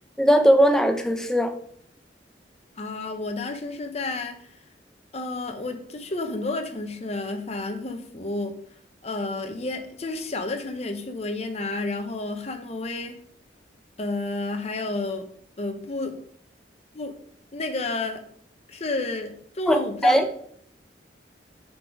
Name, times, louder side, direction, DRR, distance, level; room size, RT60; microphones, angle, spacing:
voice 1, 0.2-1.5 19.7-19.8 20.0-20.2, equal, 5° left, 5 dB, 0.6 m, -18 dB
voice 2, 2.8-4.5 5.1-8.6 9.0-13.2 14.0-15.3 15.6-16.2 16.9-17.1 17.5-18.2 18.7-20.2, left 2 dB, 35° left, 6 dB, 0.8 m, -31 dB
7.4 x 4.0 x 4.6 m, 0.64 s
head